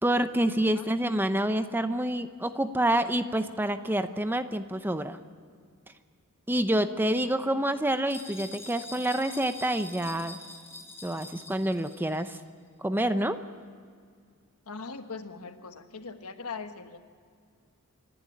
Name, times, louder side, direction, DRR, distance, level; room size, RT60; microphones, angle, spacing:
voice 1, 0.0-5.2 6.5-10.4 11.0-12.4 12.8-13.4, right 1 dB, 10° right, 10 dB, 0.6 m, -27 dB
sound 1, 8.1-12.2, left 3 dB, 10° left, 4.9 m, -45 dB
voice 2, 14.7-17.0, left 4 dB, 85° left, 8 dB, 1.3 m, -40 dB
26.0 x 11.5 x 9.8 m, 2.1 s
head